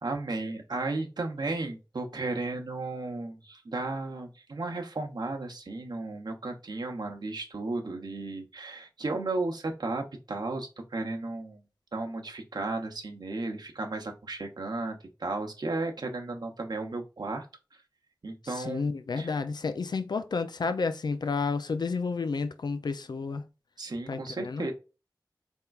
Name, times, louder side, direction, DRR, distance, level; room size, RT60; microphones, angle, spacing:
voice 1, 0.0-11.6 11.9-17.5 18.2-18.9 19.2-19.3 23.8-24.7, right 2 dB, 75° right, 0.8 m, -34 dB
voice 2, 18.4-23.4 24.1-24.7, left 4 dB, 80° left, 0.4 m, -31 dB
4.3 x 3.6 x 2.3 m
wide cardioid pair, 60°, 7 cm